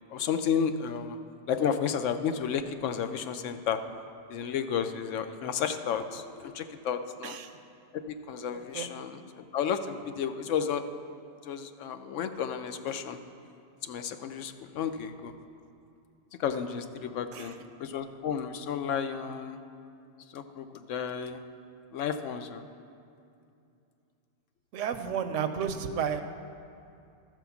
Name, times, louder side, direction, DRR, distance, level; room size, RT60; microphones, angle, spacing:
voice 1, 0.1-1.2 1.5-3.8 4.3-7.3 7.9-10.8 11.4-13.2 13.8-15.3 16.4-17.5 17.8-19.6 20.3-21.4 21.9-22.6, left 7 dB, 80° left, 9 dB, 0.9 m, -32 dB
voice 2, 24.7-26.2, right 7 dB, 80° right, 9 dB, 1.0 m, -32 dB
13.0 x 4.5 x 7.0 m, 2.6 s
omnidirectional pair, 1.3 m